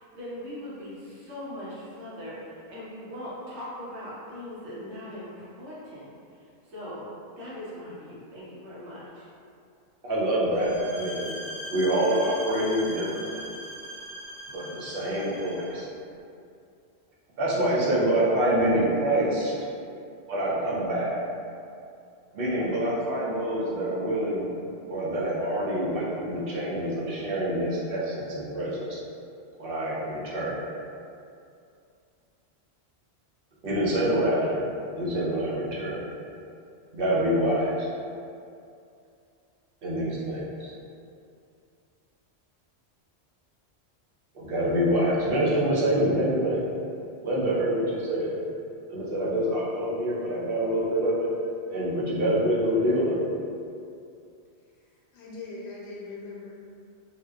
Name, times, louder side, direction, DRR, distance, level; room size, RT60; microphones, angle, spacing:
voice 1, 0.0-7.1 7.4-9.3, left 1 dB, 85° right, -8 dB, 1.0 m, -40 dB
voice 2, 10.0-11.3 11.7-13.4 14.5-15.9 17.4-19.5 20.3-21.1 22.3-24.5 24.9-29.0 29.6-30.6 33.6-34.6 35.0-36.0 36.9-37.9 39.8-40.7 44.3-46.7 47.2-48.3 48.9-51.3 51.7-53.3, right 1 dB, 65° right, -7 dB, 0.7 m, -26 dB
sound 1, 10.5-15.8, equal, 25° left, 0.9 m, -40 dB
voice 3, 54.8-56.6, left 3 dB, 75° left, -5 dB, 0.8 m, -41 dB
2.6 x 2.0 x 2.3 m, 2.5 s
omnidirectional pair, 1.1 m